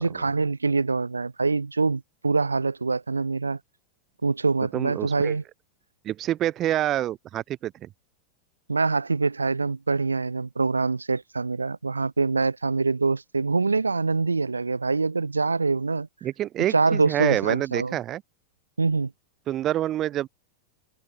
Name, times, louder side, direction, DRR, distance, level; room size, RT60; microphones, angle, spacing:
voice 1, 0.0-3.6 4.2-5.4 8.7-16.1 16.7-18.0 18.8-19.1, right 4 dB, 80° right, 1.0 m, -24 dB
voice 2, 4.7-5.4 6.0-7.9 16.2-18.2 19.5-20.3, right 13 dB, 30° right, 2.4 m, -27 dB
figure-of-eight pair, 90°, 0 cm